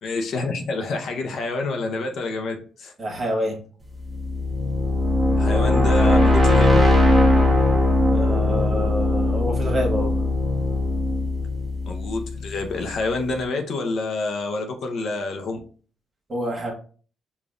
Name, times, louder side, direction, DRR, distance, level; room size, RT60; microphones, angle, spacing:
voice 1, 0.0-2.9 5.4-6.8 11.9-15.6, left 3 dB, 65° left, 4 dB, 0.7 m, -27 dB
voice 2, 3.0-3.6 8.1-10.2 16.3-16.7, equal, 35° right, 0 dB, 1.3 m, -27 dB
sound 1, 4.0-12.8, left 2 dB, 10° right, 1.2 m, -20 dB
5.1 x 2.4 x 2.5 m, 0.42 s
cardioid pair, 90°, 0 cm